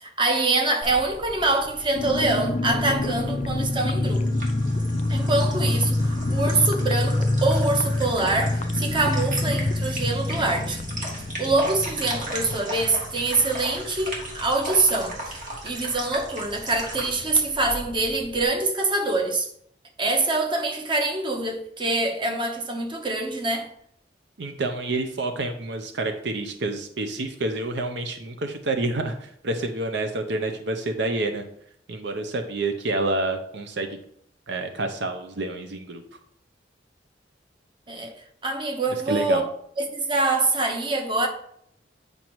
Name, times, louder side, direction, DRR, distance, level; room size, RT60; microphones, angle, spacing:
voice 1, 0.0-4.3 5.1-10.8 11.4-19.5 20.0-23.7 37.9-38.1 38.4-39.5 39.8-41.3, right 2 dB, 25° right, 1.0 m, -25 dB
sound 1, 0.8-18.5, right 1 dB, 45° right, 1.9 m, -37 dB
sound 2, 1.9-14.3 14.6-14.7 14.9-15.2, left 2 dB, 35° left, 0.4 m, -26 dB
voice 2, 24.4-31.4 31.9-33.9 34.5-36.0 39.1-39.4, right 2 dB, 70° right, 0.6 m, -28 dB
8.8 x 5.2 x 3.0 m
head